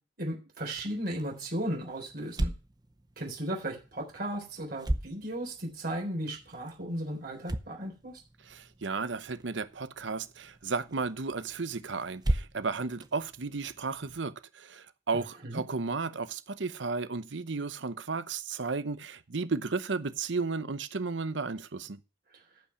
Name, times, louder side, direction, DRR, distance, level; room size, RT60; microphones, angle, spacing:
voice 1, 0.2-2.5 3.2-8.1 15.4-15.6, right 1 dB, 55° right, 3.8 m, -35 dB
sound 1, 0.6-14.2, right 1 dB, 25° right, 0.7 m, -39 dB
voice 2, 8.4-22.0, right 4 dB, 90° right, 0.8 m, -34 dB
13.5 x 5.7 x 5.7 m
head